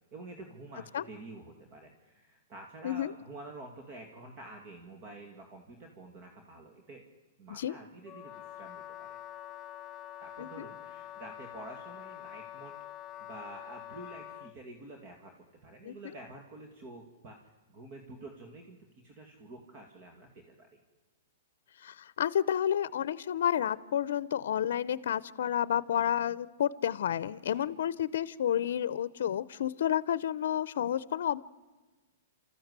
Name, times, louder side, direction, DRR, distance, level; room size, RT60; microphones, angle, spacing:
voice 1, 0.1-7.1 7.4-9.2 10.2-12.8 13.2-15.3 15.6-20.8 27.5-27.7, right 2 dB, 40° right, 3 dB, 2.4 m, -49 dB
Wind instrument woodwind instrument, 8.0-14.6, left 12 dB, 15° left, 0.8 m, -46 dB
voice 2, 21.8-31.4, left 10 dB, 70° left, 17 dB, 0.6 m, -30 dB
29.0 x 14.0 x 8.1 m, 1.3 s
hypercardioid pair, 145°, 0 cm